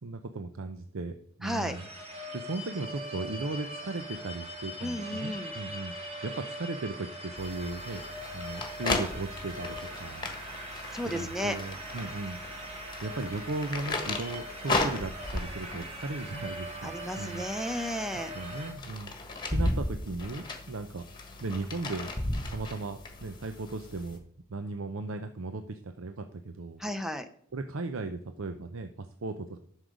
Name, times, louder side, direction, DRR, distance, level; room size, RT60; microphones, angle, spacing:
voice 1, 0.0-1.1 1.4-1.8 2.3-5.9 6.2-8.0 8.3-10.3 11.0-12.4 13.0-17.4 18.3-19.1 19.5-21.0 21.4-22.1 22.5-24.2 24.5-26.8 27.5-29.6, right 3 dB, 70° right, 7 dB, 0.6 m, -36 dB
voice 2, 1.4-1.8 4.8-5.5 10.9-11.6 16.8-18.3 26.8-27.3, equal, ahead, 8 dB, 0.5 m, -33 dB
sound 1, 1.4-18.7, equal, 30° right, 1.6 m, -41 dB
sound 2, 7.4-24.2, left 2 dB, 20° left, 1.4 m, -36 dB
11.5 x 6.4 x 5.1 m, 0.65 s
head